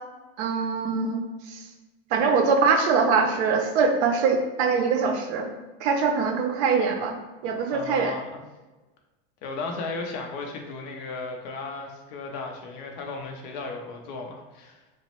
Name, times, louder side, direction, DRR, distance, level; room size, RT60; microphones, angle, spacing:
voice 1, 0.4-1.2 1.5-1.6 2.1-5.5 5.8-7.2 7.4-8.1, right 5 dB, 85° right, 4 dB, 0.6 m, -23 dB
voice 2, 7.7-8.4 9.4-14.8, left 3 dB, 40° left, 2 dB, 0.4 m, -35 dB
2.9 x 2.0 x 2.8 m, 1.1 s
supercardioid pair, 175°, 32 cm